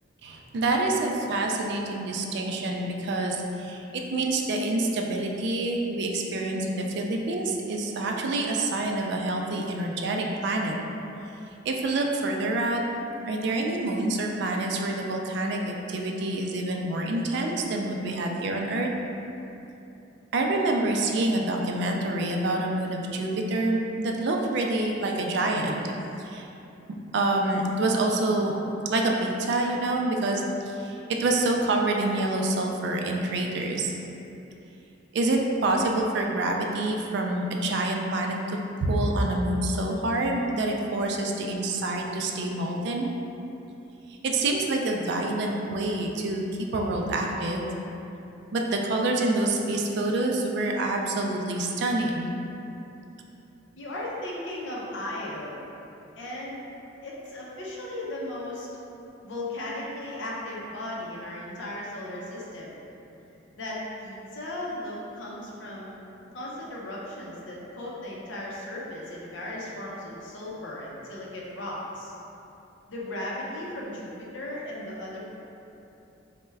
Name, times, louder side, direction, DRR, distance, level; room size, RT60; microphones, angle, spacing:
voice 1, 0.2-10.7 11.7-12.8 13.3-18.9 20.3-25.8 26.2-26.5 27.1-28.5 28.9-33.9 35.1-43.1 44.2-47.7 48.5-52.3, right 2 dB, 60° right, 1 dB, 0.3 m, -27 dB
voice 2, 53.8-55.6 56.2-56.7 57.0-58.7 59.2-62.8 63.5-66.0 66.3-72.1 72.9-75.2, left 1 dB, 70° left, -4 dB, 0.5 m, -36 dB
3.3 x 2.1 x 3.3 m, 2.9 s
head